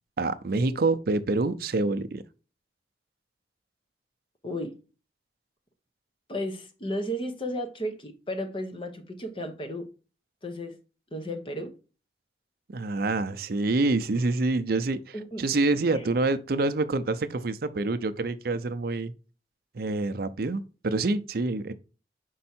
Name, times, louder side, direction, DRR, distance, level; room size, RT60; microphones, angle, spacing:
voice 1, 0.2-2.2 12.7-19.1 19.7-21.7, right 3 dB, 55° right, 0.5 m, -27 dB
voice 2, 4.4-4.8 6.3-9.9 10.4-10.8 11.1-11.7 15.1-15.4 15.9-16.1, equal, 30° left, 0.9 m, -34 dB
5.3 x 4.7 x 4.3 m
head